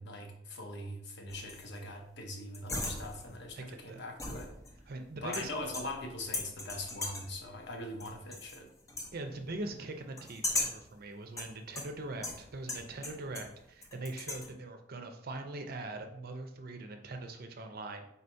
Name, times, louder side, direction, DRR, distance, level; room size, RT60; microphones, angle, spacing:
voice 1, 0.0-4.5 5.2-8.7, left 1 dB, 65° left, 4 dB, 0.8 m, -42 dB
sound 1, 1.3-1.8 2.5-3.4 4.2-4.9 5.3-6.1 6.3-7.4 8.0-8.6 8.9-9.1 10.2-10.9 11.4-13.6 13.8-14.5, left 2 dB, 15° left, 0.6 m, -38 dB
voice 2, 3.5-4.0 4.9-5.5 9.1-18.1, right 2 dB, 55° right, 5 dB, 0.6 m, -42 dB
4.0 x 2.7 x 4.4 m, 0.76 s
head